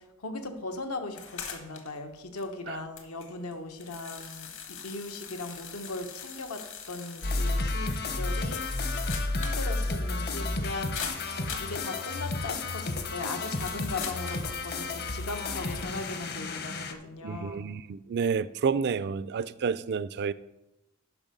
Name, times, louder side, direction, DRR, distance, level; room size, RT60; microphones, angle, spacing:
voice 1, 0.0-8.7 9.3-11.0 11.6-17.6, left 2 dB, 90° left, 5 dB, 1.2 m, -38 dB
sound 1, 1.1-2.0 2.4-2.5 3.0-7.6 7.9-8.0 8.4-9.7 9.9-10.0 10.9-11.8 13.4-14.5, left 7 dB, 65° left, 1.4 m, -42 dB
sound 2, 7.2-16.9, left 2 dB, 50° left, 0.9 m, -32 dB
voice 2, 17.2-20.3, right 6 dB, 50° right, 16 dB, 0.4 m, -30 dB
11.0 x 5.6 x 5.3 m, 0.91 s
head